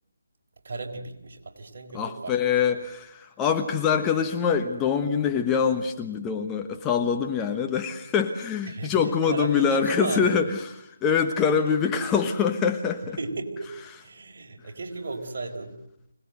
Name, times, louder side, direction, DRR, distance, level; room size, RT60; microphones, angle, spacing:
voice 1, 0.6-2.4 8.7-10.5 13.2-13.7 14.0-15.8, right 3 dB, 50° right, 1 dB, 4.5 m, -35 dB
voice 2, 1.9-13.2, left 6 dB, 15° left, 5 dB, 1.2 m, -24 dB
25.5 x 19.0 x 8.0 m, 0.76 s
figure-of-eight pair, 155°, 0 cm